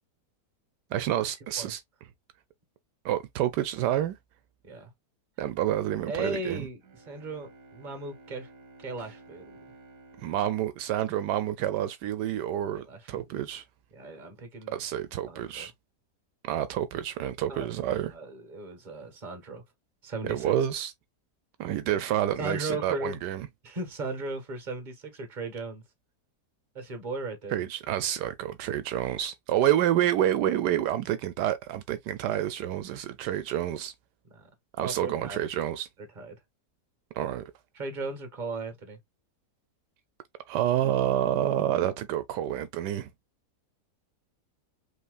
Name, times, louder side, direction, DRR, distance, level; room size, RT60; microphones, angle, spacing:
voice 1, 0.9-1.8 3.0-4.2 5.4-6.7 10.2-13.6 14.7-15.7 16.4-18.1 20.3-20.9 21.6-23.5 27.5-33.9 34.8-35.9 37.1-37.4 40.5-43.1, right 11 dB, 80° right, 1.2 m, -28 dB
voice 2, 6.1-8.5 8.8-9.6 12.9-13.4 13.9-14.8 15.3-15.7 17.5-17.7 18.1-19.6 20.0-20.5 22.4-23.2 23.6-25.8 26.7-27.6 34.3-34.5 34.8-35.4 36.1-36.4 37.7-39.0, right 3 dB, 30° right, 1.4 m, -37 dB
Bowed string instrument, 6.8-11.8, right 2 dB, 60° right, 1.4 m, -54 dB
5.5 x 3.4 x 2.3 m
omnidirectional pair, 1.8 m